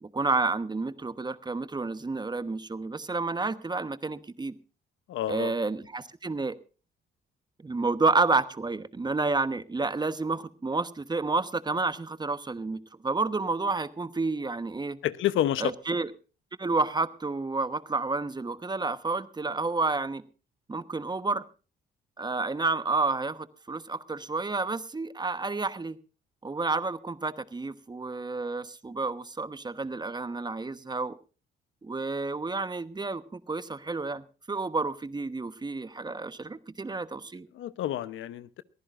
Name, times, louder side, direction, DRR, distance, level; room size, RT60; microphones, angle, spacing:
voice 1, 0.0-4.6 5.3-6.6 7.6-15.0 15.6-16.1 16.6-20.2 20.7-21.4 22.2-26.0 26.4-31.1 31.8-37.5, right 3 dB, 20° right, 13 dB, 1.1 m, -30 dB
voice 2, 5.1-5.5 15.0-15.7 37.6-38.6, left 12 dB, 80° left, 15 dB, 0.9 m, -29 dB
22.5 x 15.0 x 2.5 m, 0.35 s
cardioid pair, 90°, 20 cm